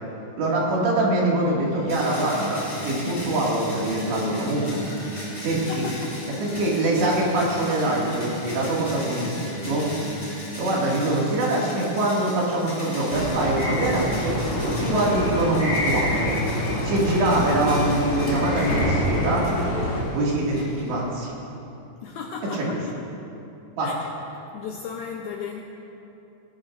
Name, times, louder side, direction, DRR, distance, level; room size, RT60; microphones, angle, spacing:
voice 1, 0.4-4.9 5.4-5.9 6.4-9.8 10.6-14.3 14.6-16.3 16.8-19.5 20.1-21.3 22.5-22.8 23.8-23.9, right 1 dB, 75° right, -4 dB, 4.4 m, -24 dB
Singing, 1.6-12.7, equal, 55° left, 2.7 m, -38 dB
sound 1, 1.9-21.2, left 1 dB, 10° left, 2.3 m, -39 dB
voice 2, 5.5-6.2 9.2-9.4 22.0-22.8 23.8-24.0 24.3-25.6, left 6 dB, 80° left, 0 dB, 2.2 m, -36 dB
sound 2, 13.1-20.0, equal, 35° left, 3.5 m, -26 dB
19.0 x 16.0 x 2.6 m, 2.9 s
omnidirectional pair, 5.1 m